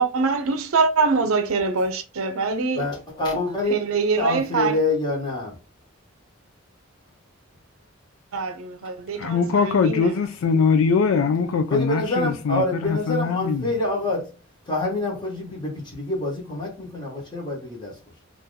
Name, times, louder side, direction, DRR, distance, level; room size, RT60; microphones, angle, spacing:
voice 1, 0.0-2.9 3.7-4.8 8.3-10.1, right 4 dB, 85° right, 0.6 m, -24 dB
voice 2, 2.8-3.8 4.2-5.5 11.7-14.3 14.7-17.9, left 2 dB, 20° left, 1.0 m, -26 dB
voice 3, 9.2-13.7, left 5 dB, 75° left, 0.3 m, -22 dB
2.7 x 2.5 x 3.7 m
head